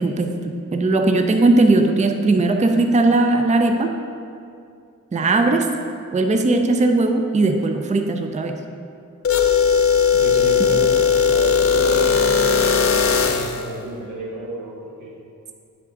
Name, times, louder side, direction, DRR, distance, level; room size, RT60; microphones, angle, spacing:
voice 1, 0.0-3.9 5.1-5.7 6.1-8.6, right 2 dB, 25° right, 5 dB, 0.4 m, -18 dB
sound 1, 9.2-13.7, left 6 dB, 45° left, 0.5 m, -17 dB
voice 2, 10.1-15.1, right 1 dB, 90° right, -2 dB, 1.1 m, -31 dB
9.6 x 3.6 x 3.6 m, 2.4 s
wide cardioid pair, 75°, 32 cm